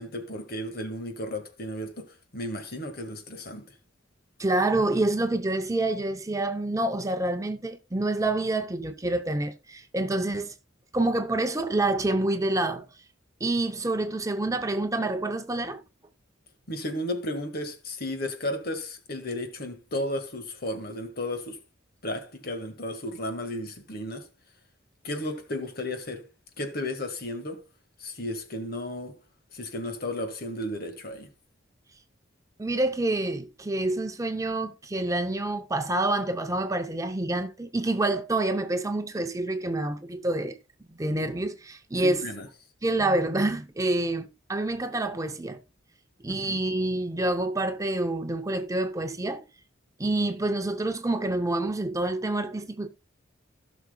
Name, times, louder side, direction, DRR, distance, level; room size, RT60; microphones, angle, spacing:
voice 1, 0.0-3.6 16.7-21.6 22.0-24.3 25.0-26.3 26.6-27.6 28.0-29.2 29.5-31.3 42.0-42.5 46.3-46.6, left 1 dB, 50° left, 1.6 m, -34 dB
voice 2, 4.4-10.5 10.9-12.9 13.4-15.8 32.6-40.6 41.0-42.3 42.8-45.6 46.2-49.4 50.0-52.9, right 2 dB, 15° right, 0.6 m, -27 dB
17.0 x 6.0 x 2.2 m
head